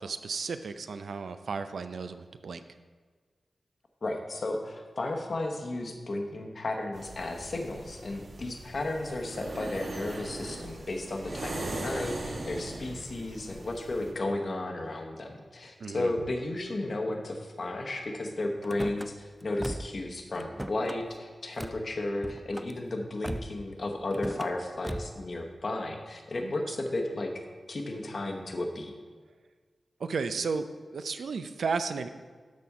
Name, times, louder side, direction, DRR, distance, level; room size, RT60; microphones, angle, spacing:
voice 1, 0.0-2.6 15.8-16.1 26.4-26.7 30.0-32.1, right 5 dB, 85° right, 10 dB, 0.4 m, -34 dB
voice 2, 4.0-27.3 27.7-28.9, left 2 dB, 50° left, 3 dB, 1.0 m, -34 dB
sound 1, 6.9-14.1, right 2 dB, 60° right, 1.1 m, -40 dB
Car / Slam, 18.6-19.1 19.6-20.0 20.3-21.0 21.6-21.8 22.2-22.7 23.2-23.7 24.1-24.5 24.8-25.2, right 1 dB, 5° right, 0.3 m, -37 dB
12.5 x 4.2 x 4.8 m, 1.5 s
wide cardioid pair, 135°, 0 cm